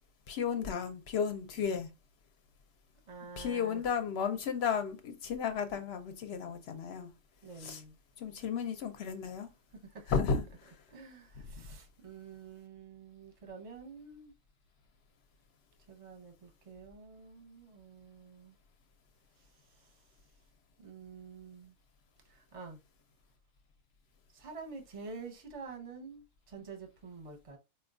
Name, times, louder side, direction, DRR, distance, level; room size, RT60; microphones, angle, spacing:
voice 1, 0.3-1.9 3.4-7.1 7.6-7.8 8.2-9.5 10.1-10.8, left 6 dB, 65° left, 0.7 m, -33 dB
voice 2, 3.1-3.8 7.4-7.9 9.7-10.2 10.9-14.3 15.9-18.6 19.4-20.0 20.8-21.7 22.2-22.8 24.3-27.6, right 4 dB, 30° right, 0.7 m, -48 dB
4.4 x 2.3 x 2.4 m
omnidirectional pair, 1.3 m